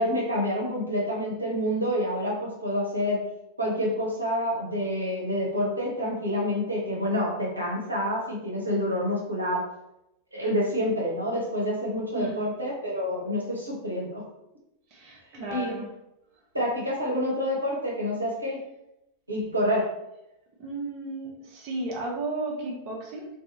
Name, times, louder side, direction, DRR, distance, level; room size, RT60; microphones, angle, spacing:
voice 1, 0.0-3.2 3.6-9.6 10.3-14.2 15.3-15.8 16.5-18.6 19.3-19.9, equal, 80° right, -3 dB, 0.7 m, -28 dB
voice 2, 12.1-12.5 14.9-15.9 20.6-23.3, right 2 dB, 40° right, -2 dB, 0.6 m, -34 dB
2.5 x 2.3 x 2.8 m, 0.86 s
figure-of-eight pair, 90°, 0 cm